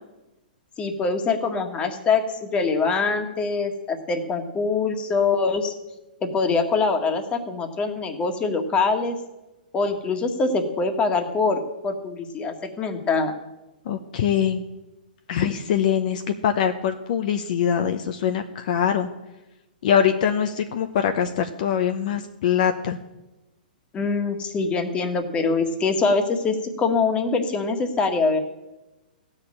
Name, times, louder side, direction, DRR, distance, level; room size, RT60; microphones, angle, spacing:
voice 1, 0.8-5.7 6.3-9.2 9.7-13.3 23.9-28.4, left 4 dB, 20° left, 6 dB, 1.7 m, -24 dB
voice 2, 13.9-14.6 15.3-19.1 19.8-23.0, left 8 dB, 55° left, 6 dB, 1.0 m, -23 dB
15.5 x 6.6 x 8.8 m, 1.0 s
hypercardioid pair, 120°, 5 cm